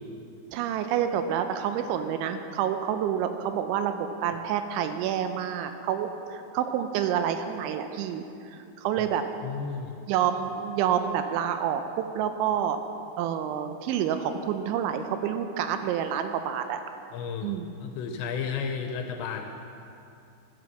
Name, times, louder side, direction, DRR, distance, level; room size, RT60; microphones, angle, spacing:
voice 1, 0.5-9.2 10.1-11.8 12.1-12.8 13.2-16.8 17.4-17.7, right 9 dB, 85° right, 8 dB, 2.9 m, -28 dB
voice 2, 9.4-10.0 17.1-19.5, left 6 dB, 80° left, 5 dB, 2.7 m, -33 dB
12.5 x 9.4 x 6.8 m, 2.7 s
omnidirectional pair, 5.5 m